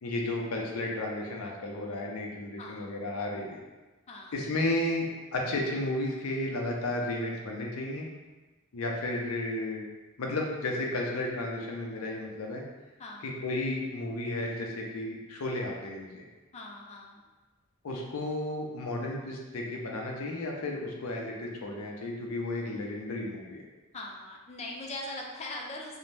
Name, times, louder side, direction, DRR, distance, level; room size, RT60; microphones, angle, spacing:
voice 1, 0.0-3.6 4.3-5.1 5.3-8.1 8.7-9.8 10.2-12.6 13.2-16.3 17.8-23.6, left 1 dB, 85° left, 0 dB, 0.5 m, -33 dB
voice 2, 2.6-2.9 4.1-4.3 13.0-13.3 16.5-17.2 23.9-26.0, left 2 dB, 30° left, -1 dB, 0.4 m, -41 dB
2.6 x 2.1 x 3.1 m, 1.2 s
head